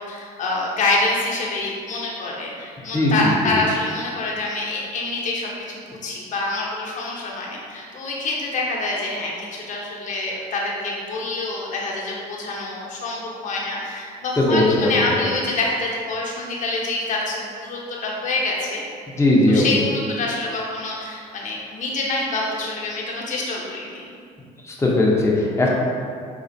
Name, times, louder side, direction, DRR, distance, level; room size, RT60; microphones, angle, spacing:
voice 1, 0.0-18.8 19.5-24.1, left 2 dB, 45° left, -4 dB, 0.8 m, -26 dB
voice 2, 2.9-3.5 14.4-14.9 19.2-19.7 24.8-25.7, left 1 dB, 15° left, -4 dB, 0.7 m, -18 dB
4.2 x 2.4 x 2.6 m, 2.3 s
supercardioid pair, 85°, 17 cm